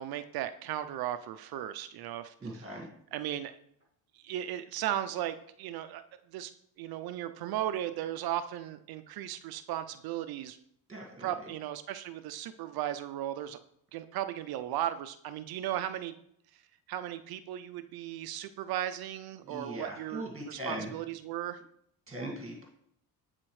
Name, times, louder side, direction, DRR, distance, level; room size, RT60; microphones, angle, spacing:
voice 1, 0.0-2.6 3.1-3.6 4.1-6.0 6.3-6.5 6.8-10.6 11.2-13.6 13.9-16.2 16.5-16.6 16.9-21.6, right 12 dB, 60° right, 11 dB, 0.5 m, -36 dB
voice 2, 2.4-2.9 10.9-11.3 19.4-20.9 22.1-22.6, right 1 dB, 15° right, -1 dB, 1.8 m, -39 dB
8.6 x 4.1 x 3.1 m, 0.70 s
supercardioid pair, 90°, 42 cm